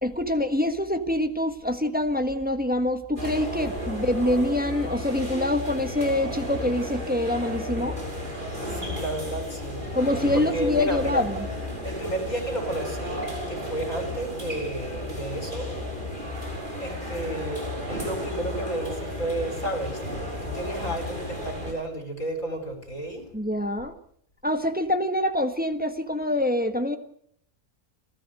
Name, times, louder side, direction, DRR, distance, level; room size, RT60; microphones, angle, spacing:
voice 1, 0.0-8.0 9.9-11.5 23.3-23.9 24.4-27.0, left 1 dB, 5° right, 7 dB, 1.3 m, -25 dB
sound 1, 3.2-21.7, left 1 dB, 35° right, 6.0 m, -33 dB
voice 2, 8.8-9.9 10.3-11.2 11.8-15.7 16.8-20.0 20.4-23.2, right 1 dB, 60° left, 5 dB, 4.8 m, -32 dB
29.5 x 13.0 x 7.7 m, 0.69 s
omnidirectional pair, 1.6 m